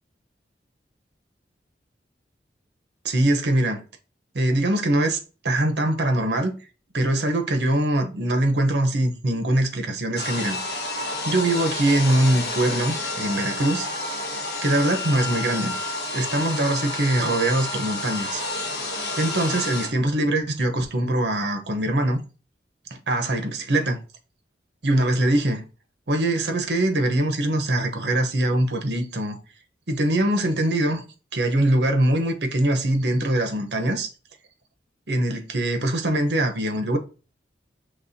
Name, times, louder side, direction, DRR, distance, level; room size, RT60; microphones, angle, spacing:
voice 1, 3.0-3.8 4.3-6.5 6.9-10.6 11.2-13.9 14.6-15.7 16.1-18.4 19.2-22.2 23.1-24.0 24.8-25.6 26.1-29.4 29.9-31.0 31.3-34.1 35.1-37.0, right 1 dB, 75° right, 0.8 m, -22 dB
sound 1, 10.2-19.9, left 2 dB, 70° left, 1.5 m, -30 dB
5.9 x 3.1 x 2.7 m
head